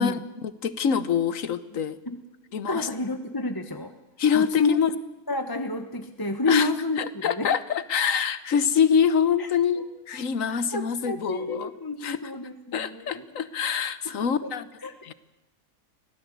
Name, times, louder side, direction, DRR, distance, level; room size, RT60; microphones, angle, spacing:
voice 1, 0.0-2.0 2.5-2.9 4.2-4.9 6.5-6.7 7.0-11.7 12.0-12.2 12.7-14.7 15.0-15.1, left 7 dB, 65° left, 15 dB, 1.4 m, -25 dB
voice 2, 2.7-3.9 4.3-4.8 5.3-7.5 9.4-9.5 10.5-13.2 14.4-14.5 14.8-14.9, left 3 dB, 15° left, 7 dB, 1.2 m, -29 dB
24.5 x 17.5 x 8.3 m, 1.1 s
omnidirectional pair, 1.5 m